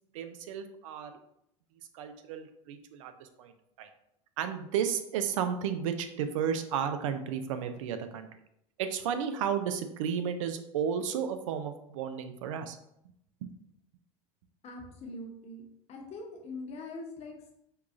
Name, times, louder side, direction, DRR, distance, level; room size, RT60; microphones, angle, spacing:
voice 1, 0.1-1.2 1.9-3.5 3.8-3.9 4.4-8.3 8.8-12.8 13.4-13.5, right 8 dB, 80° right, 9 dB, 0.4 m, -33 dB
voice 2, 14.6-15.6 15.9-17.5, left 2 dB, 40° left, 1 dB, 0.9 m, -42 dB
4.6 x 2.3 x 2.5 m, 0.76 s
supercardioid pair, 105°, 16 cm